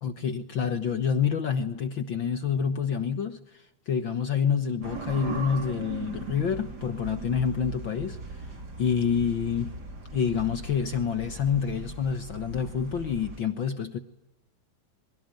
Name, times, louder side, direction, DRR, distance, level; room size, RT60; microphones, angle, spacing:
voice 1, 0.0-8.2 8.8-9.7 10.1-14.0, left 7 dB, 55° left, 1.4 m, -28 dB
sound 1, 4.8-13.4, right 3 dB, 30° right, 3.5 m, -39 dB
27.5 x 23.0 x 9.2 m
omnidirectional pair, 3.6 m